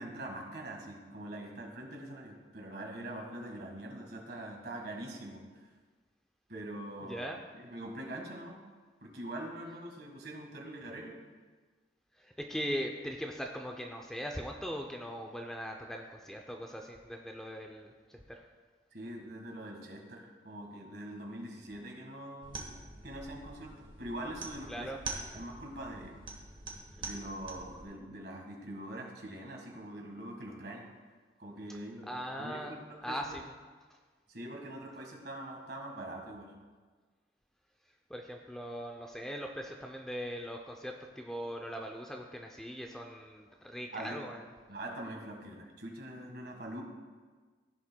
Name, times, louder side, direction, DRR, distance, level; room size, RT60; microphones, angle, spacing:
voice 1, 0.0-5.4 6.5-7.3 7.5-8.6 9.0-11.2 18.9-22.7 23.0-24.9 25.3-26.2 27.0-30.9 31.4-33.4 34.3-36.5 43.9-44.2 44.7-46.8, right 1 dB, 60° right, 1 dB, 1.6 m, -43 dB
voice 2, 7.0-7.4 12.2-18.4 24.7-25.0 32.1-33.4 38.1-44.4, equal, 5° left, 2 dB, 0.4 m, -40 dB
sound 1, 22.4-27.8, right 3 dB, 25° right, 1.1 m, -45 dB
15.0 x 7.2 x 2.2 m, 1.4 s
head